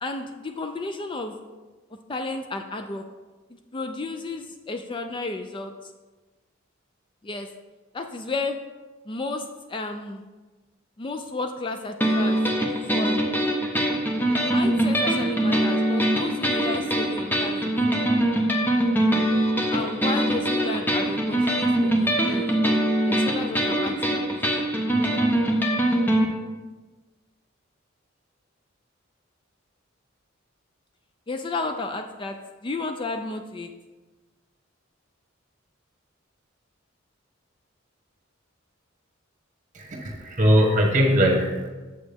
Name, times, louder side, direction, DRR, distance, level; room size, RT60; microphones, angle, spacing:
voice 1, 0.0-1.3 2.1-3.0 3.5-5.9 7.2-7.5 7.9-8.6 9.1-10.2 11.0-12.4 12.9-13.2 14.4-17.7 19.7-22.5 23.0-24.3 31.3-32.4 32.6-33.7, left 3 dB, 25° left, 6 dB, 0.4 m, -32 dB
sound 1, 12.0-26.3, right 1 dB, 10° left, 0.7 m, -23 dB
voice 2, 39.7-41.7, equal, 40° right, 0 dB, 1.3 m, -20 dB
7.6 x 6.2 x 3.5 m, 1.3 s
head